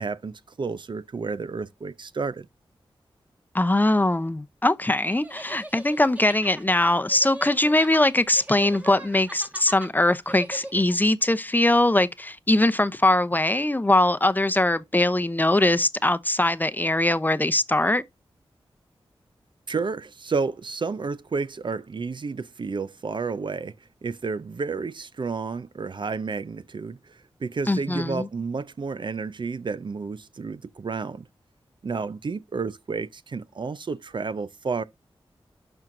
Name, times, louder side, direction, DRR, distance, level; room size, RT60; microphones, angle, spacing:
voice 1, 0.0-2.5 19.7-23.7 24.0-31.3 31.8-34.8, right 4 dB, 55° right, 0.6 m, -31 dB
voice 2, 3.5-18.0 27.7-28.3, left 1 dB, 20° left, 0.7 m, -21 dB
sound 1, 5.1-11.1, right 1 dB, 15° right, 1.7 m, -41 dB
12.0 x 4.5 x 2.6 m
cardioid pair, 45°, 10 cm